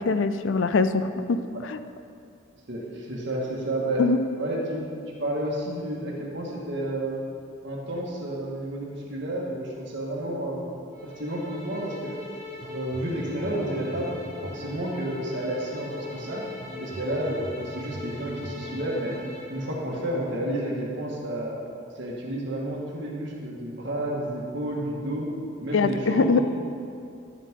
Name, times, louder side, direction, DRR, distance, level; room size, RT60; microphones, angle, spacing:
voice 1, 0.0-1.8 4.0-4.2 25.7-26.4, left 4 dB, 65° left, 11 dB, 0.4 m, -23 dB
voice 2, 2.7-4.0 4.4-4.8 5.2-7.2 7.6-12.2 12.7-14.1 14.4-16.5 16.8-19.1 19.5-21.6 22.0-25.3 25.6-26.4, right 1 dB, 60° right, -3 dB, 1.8 m, -31 dB
sound 1, 10.9-19.8, left 3 dB, 35° left, 2.1 m, -41 dB
sound 2, 12.6-20.5, right 1 dB, 40° right, 0.9 m, -42 dB
11.0 x 9.0 x 3.8 m, 2.4 s
head